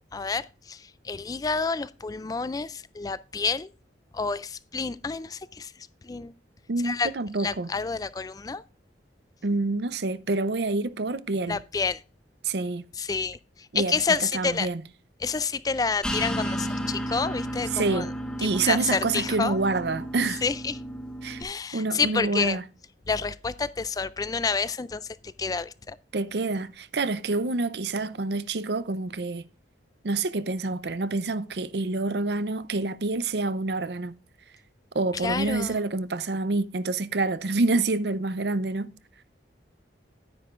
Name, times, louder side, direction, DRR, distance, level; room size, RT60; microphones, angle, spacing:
voice 1, 0.1-3.7 4.1-5.7 6.0-6.3 6.8-7.1 7.4-8.6 11.5-12.0 13.0-14.7 15.2-18.1 18.4-19.6 20.4-20.8 21.4-22.6 23.1-26.0 35.1-35.8, left 4 dB, 20° left, 0.3 m, -29 dB
voice 2, 6.7-7.7 9.4-11.6 12.4-12.8 13.7-13.9 14.3-14.8 17.7-18.1 18.4-20.4 21.2-21.4 21.7-22.6 26.1-29.5 30.0-34.1 34.9-38.9, right 3 dB, 65° right, 0.6 m, -27 dB
sound 1, 16.0-21.4, equal, 5° left, 1.2 m, -33 dB
10.0 x 9.9 x 2.5 m
head